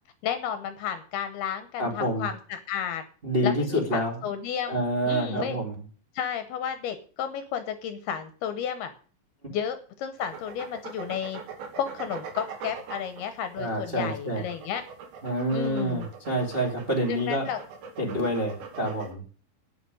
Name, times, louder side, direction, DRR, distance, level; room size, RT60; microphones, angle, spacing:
voice 1, 0.2-3.0 3.4-5.6 6.1-8.9 9.5-11.4 11.8-14.8 15.5-16.1 17.1-17.6, left 8 dB, 75° left, 10 dB, 2.6 m, -32 dB
voice 2, 1.8-2.2 3.2-4.2 4.7-5.8 13.6-14.4 15.2-17.5 18.0-19.2, equal, 20° right, 1 dB, 1.8 m, -27 dB
sound 1, 10.2-19.1, right 5 dB, 90° right, 4.6 m, -42 dB
9.3 x 7.9 x 9.2 m, 0.41 s
omnidirectional pair, 5.1 m